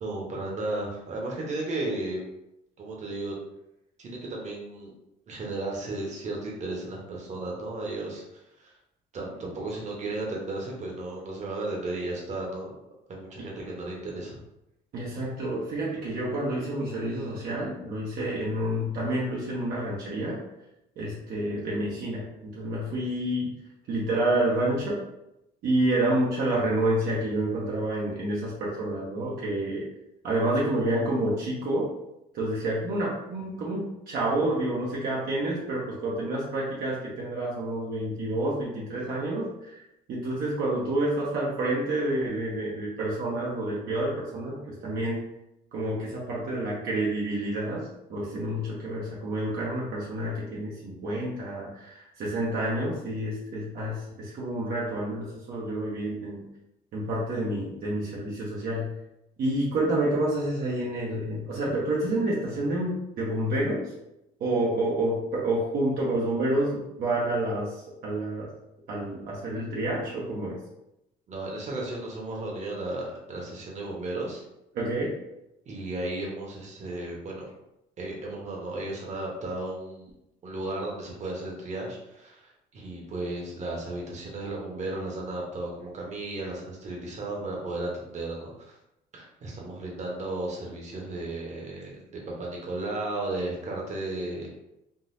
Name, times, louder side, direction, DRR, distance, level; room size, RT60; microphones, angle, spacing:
voice 1, 0.0-2.3 2.8-3.4 4.0-4.9 5.3-8.2 8.6-8.7 9.1-12.7 13.1-14.4 71.3-74.4 75.7-77.5 78.0-80.1 80.4-88.8 89.1-94.5, right 2 dB, 45° right, -2 dB, 1.1 m, -34 dB
voice 2, 14.9-20.4 21.0-23.6 23.9-25.0 25.6-29.9 30.2-31.9 32.3-39.8 40.1-45.2 45.7-56.4 56.9-59.0 59.4-63.9 64.4-68.5 68.9-70.6 74.7-75.1, right 1 dB, 65° right, -5 dB, 0.9 m, -29 dB
3.8 x 2.5 x 2.6 m, 0.86 s
cardioid pair, 110°, 17 cm